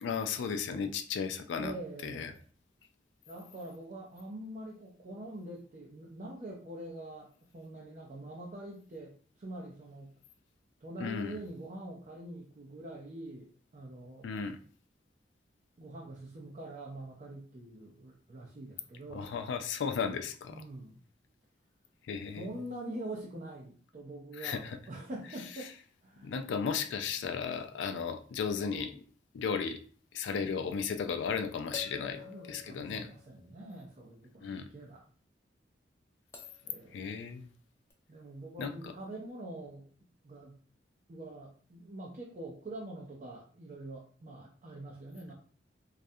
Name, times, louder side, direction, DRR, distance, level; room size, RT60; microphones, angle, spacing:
voice 1, 0.0-1.7 2.0-2.3 11.0-11.4 14.2-14.6 19.1-20.6 22.1-22.5 24.4-24.8 26.2-29.0 29.3-29.8 30.1-33.1 34.4-34.7 36.9-37.5 38.6-38.7, left 6 dB, 80° left, 8 dB, 0.3 m, -35 dB
voice 2, 1.6-2.4 3.3-10.2 10.8-14.3 15.8-19.3 20.5-21.0 22.3-25.7 26.0-26.4 27.3-27.5 32.2-35.0 36.6-37.1 38.1-39.9 40.2-40.6 41.1-45.3, right 1 dB, 45° right, -4 dB, 0.5 m, -45 dB
sound 1, 30.3-30.4 31.7-33.8 36.3-36.8 37.9-38.0, left 6 dB, 15° left, 0.4 m, -48 dB
2.3 x 2.1 x 2.6 m, 0.43 s
head